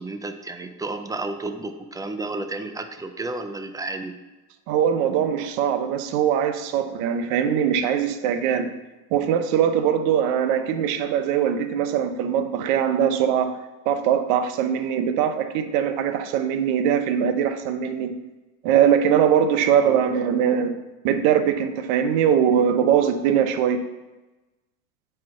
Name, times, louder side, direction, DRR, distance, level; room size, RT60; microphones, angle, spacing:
voice 1, 0.0-4.2 19.8-20.3, right 2 dB, 10° right, 7 dB, 0.4 m, -32 dB
voice 2, 4.7-8.7 9.1-13.6 13.9-18.1 18.6-20.7 21.0-23.8, right 8 dB, 75° right, 8 dB, 0.9 m, -21 dB
8.4 x 4.6 x 3.8 m, 1.1 s
supercardioid pair, 110°, 43 cm